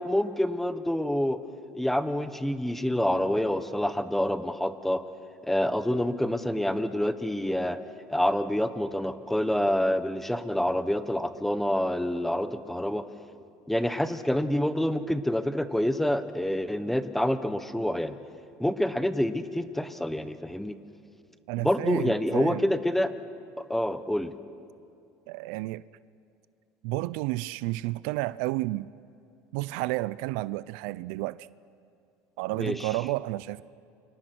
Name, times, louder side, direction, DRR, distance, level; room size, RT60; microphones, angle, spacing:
voice 1, 0.0-1.4 1.7-5.0 5.4-7.8 8.1-13.0 13.7-18.1 18.6-20.8 21.6-23.1 23.6-24.3 32.6-32.9, left 1 dB, 5° left, 1.2 m, -27 dB
voice 2, 21.5-22.7 25.3-25.8 26.8-28.9 29.5-31.4 32.4-33.6, right 19 dB, 85° right, 0.5 m, -31 dB
29.0 x 26.5 x 6.2 m
cardioid pair, 125°, 7 cm